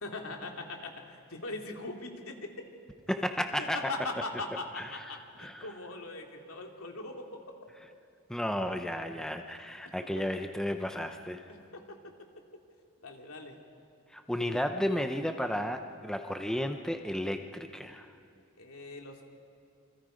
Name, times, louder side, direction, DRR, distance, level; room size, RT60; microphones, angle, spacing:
voice 1, 0.0-2.7 3.6-7.6 11.5-12.0 13.0-13.6 18.6-19.2, left 2 dB, 80° left, 2 dB, 2.7 m, -40 dB
voice 2, 3.1-3.8 4.8-5.0 5.4-5.7 8.3-11.4 14.1-18.1, equal, 5° left, 6 dB, 0.7 m, -33 dB
28.0 x 25.5 x 5.1 m, 2.5 s
head